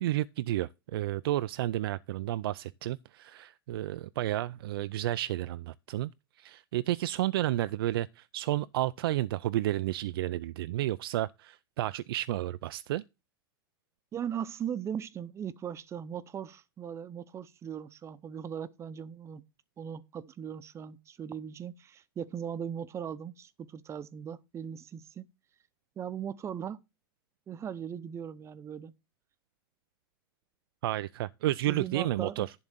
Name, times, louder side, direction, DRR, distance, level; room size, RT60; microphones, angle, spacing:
voice 1, 0.0-6.1 6.4-13.0 30.8-32.5, right 14 dB, 80° right, 0.4 m, -31 dB
voice 2, 14.1-19.4 19.8-25.3 26.0-26.8 27.5-28.9 31.7-32.5, right 8 dB, 25° right, 0.7 m, -39 dB
11.0 x 3.8 x 7.3 m
supercardioid pair, 130°, 12 cm